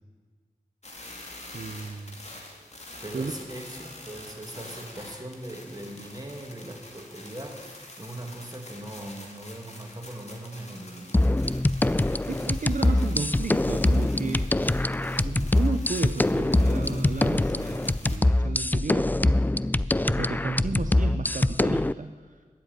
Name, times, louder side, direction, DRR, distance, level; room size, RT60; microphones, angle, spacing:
sound 1, 0.8-18.2, left 1 dB, 50° left, 2.5 m, -46 dB
voice 1, 1.5-2.2 3.1-3.3 12.3-14.6 15.2-19.4 20.1-22.4, right 4 dB, 65° right, 6 dB, 0.7 m, -33 dB
voice 2, 3.0-11.2 12.8-13.3, right 1 dB, 25° right, 2 dB, 2.4 m, -40 dB
sound 2, 11.1-21.9, left 1 dB, 10° left, 0.3 m, -24 dB
13.0 x 7.8 x 9.2 m, 1.5 s
cardioid pair, 40°, 15 cm